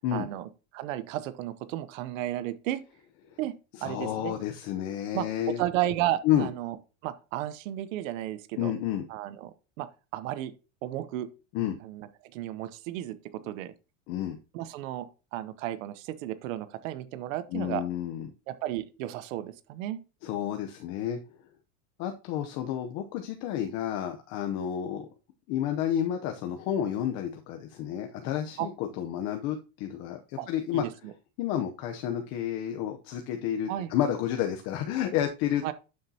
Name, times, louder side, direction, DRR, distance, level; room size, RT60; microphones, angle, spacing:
voice 1, 0.1-2.8 3.4-3.5 3.8-4.3 5.1-6.8 7.0-8.7 9.1-10.5 10.8-11.3 11.8-13.2 13.4-13.7 14.5-17.8 18.5-20.0 28.6-28.7 30.4-31.1 33.7-33.9 35.6-35.7, right 13 dB, 85° right, 0.9 m, -33 dB
voice 2, 3.7-5.6 6.2-6.5 8.6-9.0 11.5-11.8 14.1-14.4 17.5-18.3 20.2-21.2 22.0-25.1 25.5-30.8 31.4-35.7, left 10 dB, 45° left, 0.8 m, -30 dB
11.0 x 6.5 x 2.8 m
cardioid pair, 170°, 38 cm